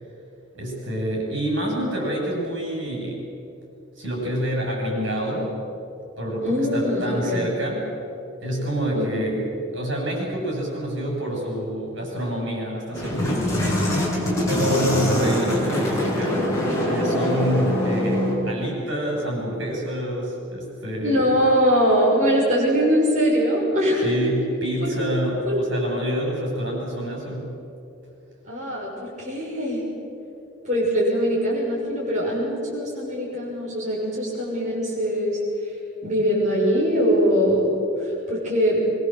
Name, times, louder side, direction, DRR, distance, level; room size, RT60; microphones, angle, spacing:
voice 1, 0.5-3.3 4.0-5.6 6.2-7.9 8.4-9.4 9.7-13.9 14.5-16.5 16.8-21.3 24.0-27.6, equal, 70° right, -1 dB, 7.9 m, -27 dB
voice 2, 6.4-7.5 8.9-9.2 21.0-24.1 24.8-24.9 25.4-25.6 28.5-29.8 30.6-35.8 36.0-37.7 38.0-38.9, equal, 35° right, -6 dB, 6.4 m, -22 dB
sound 1, 12.9-18.3, left 1 dB, 15° left, 6.0 m, -23 dB
24.0 x 23.0 x 7.9 m, 2.8 s
head